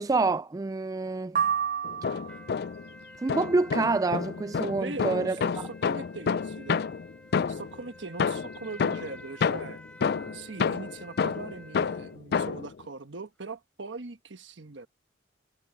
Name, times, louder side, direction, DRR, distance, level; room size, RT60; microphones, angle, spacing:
voice 1, 0.0-1.4 3.2-5.4, right 3 dB, 20° right, 0.3 m, -27 dB
sound 1, 1.3-2.6, right 7 dB, 40° right, 0.7 m, -29 dB
sound 2, 1.8-2.9 3.3-7.8 8.2-12.7, left 6 dB, 55° left, 0.4 m, -29 dB
sound 3, 2.3-12.2, left 1 dB, 5° left, 3.8 m, -50 dB
voice 2, 4.7-6.8 7.5-14.9, right 3 dB, 75° right, 1.3 m, -40 dB
head